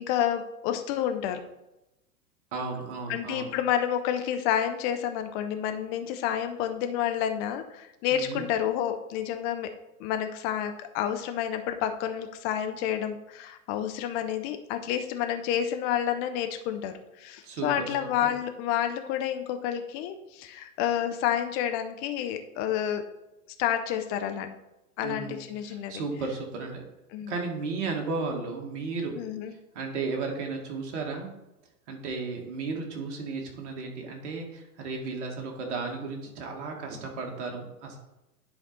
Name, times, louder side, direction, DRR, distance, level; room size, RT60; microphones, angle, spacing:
voice 1, 0.0-1.4 3.1-9.7 10.0-23.0 23.6-24.5 25.0-26.0 27.1-27.3 29.1-29.5, left 10 dB, 25° left, 7 dB, 0.5 m, -29 dB
voice 2, 2.5-3.5 8.1-8.5 17.4-18.3 25.0-26.8 27.3-29.2 29.7-31.3 31.9-38.0, right 4 dB, 50° right, 1 dB, 1.8 m, -34 dB
10.0 x 4.1 x 4.0 m, 0.94 s
figure-of-eight pair, 100°, 45 cm